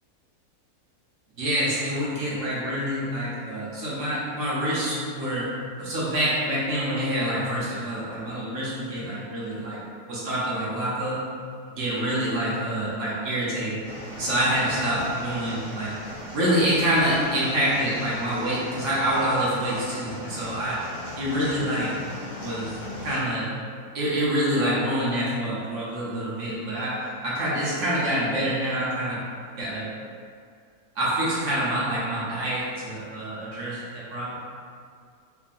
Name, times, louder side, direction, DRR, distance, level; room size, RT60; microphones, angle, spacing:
voice 1, 1.4-5.5 5.8-9.8 10.0-11.2 11.7-13.8 14.2-15.9 16.3-20.8 21.2-21.9 22.4-22.7 23.0-23.5 23.9-29.2 29.6-29.9 31.0-34.4, right 1 dB, 65° right, -8 dB, 0.8 m, -26 dB
sound 1, 13.8-23.2, left 1 dB, 60° left, 0.4 m, -38 dB
3.1 x 2.1 x 2.5 m, 2.2 s
omnidirectional pair, 1.7 m